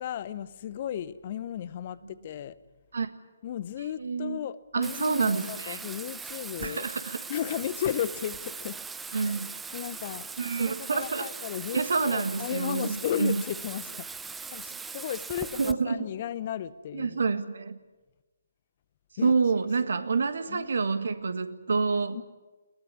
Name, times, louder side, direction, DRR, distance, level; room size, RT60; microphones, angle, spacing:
voice 1, 0.0-2.6 3.4-6.9 7.3-8.8 9.2-14.1 14.5-17.2 19.2-19.3 20.0-20.2 20.5-20.7 22.1-22.2, left 10 dB, 35° left, 17 dB, 0.8 m, -35 dB
voice 2, 4.0-4.4 4.7-5.8 6.6-7.2 9.1-9.5 10.4-11.3 11.7-13.4 15.6-16.1 16.9-17.8 19.2-22.2, right 4 dB, 60° right, 11 dB, 1.7 m, -28 dB
Bathtub (filling or washing), 4.8-15.7, right 5 dB, 5° right, 0.7 m, -40 dB
21.5 x 19.0 x 9.7 m, 1.2 s
figure-of-eight pair, 135°, 0 cm